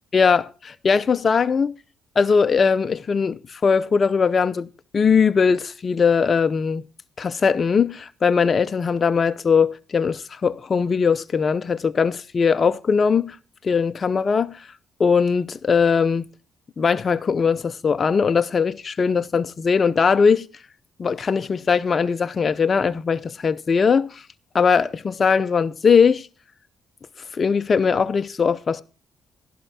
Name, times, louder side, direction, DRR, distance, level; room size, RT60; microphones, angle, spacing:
voice 1, 0.1-1.7 2.2-4.7 4.9-6.8 7.2-13.4 13.6-14.7 15.0-16.3 16.8-20.5 21.0-24.2 24.5-26.3 27.3-28.8, left 5 dB, 40° left, 0.5 m, -20 dB
13.5 x 11.5 x 2.7 m
cardioid pair, 90°, 0 cm